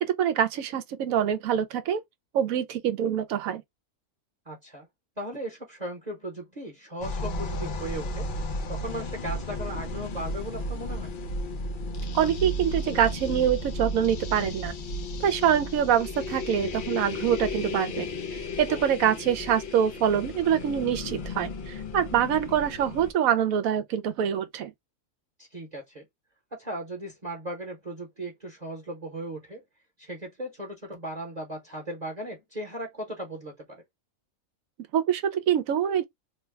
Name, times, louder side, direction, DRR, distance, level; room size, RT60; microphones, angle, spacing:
voice 1, 0.0-2.0 2.3-3.6 12.1-14.7 15.2-18.1 18.6-24.7 34.9-36.0, right 9 dB, 75° right, 1.0 m, -25 dB
voice 2, 4.4-4.9 5.2-8.3 8.7-11.1 18.7-18.9 25.4-26.1 26.5-29.6 30.0-33.8, right 1 dB, 35° right, 0.9 m, -37 dB
sound 1, 7.0-23.1, left 2 dB, 60° left, 0.5 m, -34 dB
3.0 x 2.2 x 3.3 m
omnidirectional pair, 1.5 m